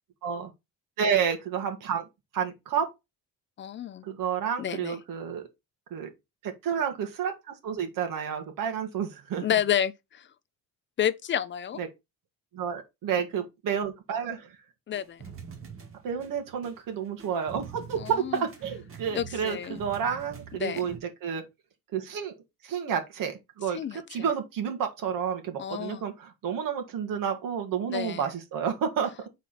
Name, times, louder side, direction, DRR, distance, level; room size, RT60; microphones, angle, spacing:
voice 1, 1.0-2.0 2.3-2.9 4.0-5.5 5.9-6.1 6.4-9.5 11.8-11.9 12.5-14.5 16.0-21.4 21.9-22.3 22.6-29.1, right 7 dB, 70° right, 2.1 m, -30 dB
voice 2, 3.6-4.0 4.6-5.0 9.4-10.3 11.0-11.8 14.9-15.2 18.0-18.4 19.1-19.8 20.6-20.9 23.7-24.0 25.6-26.0 27.9-28.3, left 9 dB, 35° left, 0.6 m, -30 dB
sound 1, 14.9-21.0, right 6 dB, 40° right, 2.0 m, -45 dB
7.1 x 4.2 x 4.2 m
cardioid pair, 155°, 34 cm